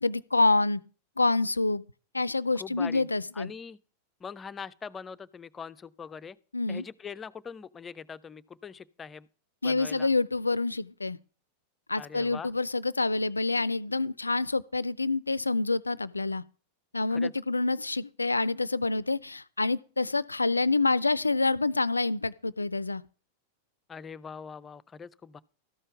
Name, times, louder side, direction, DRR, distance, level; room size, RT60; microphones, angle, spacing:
voice 1, 0.0-0.8 1.2-1.8 2.1-3.5 6.5-6.8 9.6-11.2 11.9-16.4 16.9-23.0, left 3 dB, 80° left, 0.4 m, -27 dB
voice 2, 2.6-3.1 3.3-3.8 4.2-6.4 6.7-9.3 9.6-10.1 12.0-12.5 17.1-17.3 23.9-25.4, left 6 dB, 20° left, 0.5 m, -42 dB
13.5 x 5.5 x 5.9 m
figure-of-eight pair, 90°, 0 cm